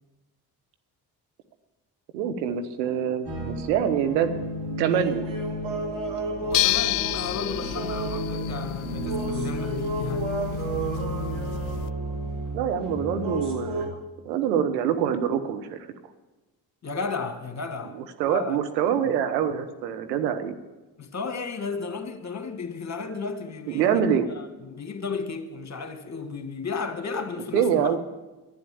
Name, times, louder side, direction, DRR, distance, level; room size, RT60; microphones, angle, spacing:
voice 1, 2.1-4.3 4.8-5.3 12.5-13.9 14.2-15.8 18.2-20.5 23.7-24.3 27.5-28.0, right 8 dB, 85° right, 1.1 m, -25 dB
sound 1, 3.3-13.9, right 1 dB, 60° right, 3.6 m, -31 dB
voice 2, 6.4-10.7 16.8-18.0 18.3-18.6 21.0-24.0 24.3-27.9, left 5 dB, 35° left, 1.9 m, -34 dB
sound 2, 6.5-11.9, left 20 dB, 70° left, 0.5 m, -30 dB
11.5 x 9.4 x 8.6 m
hypercardioid pair, 50°, 48 cm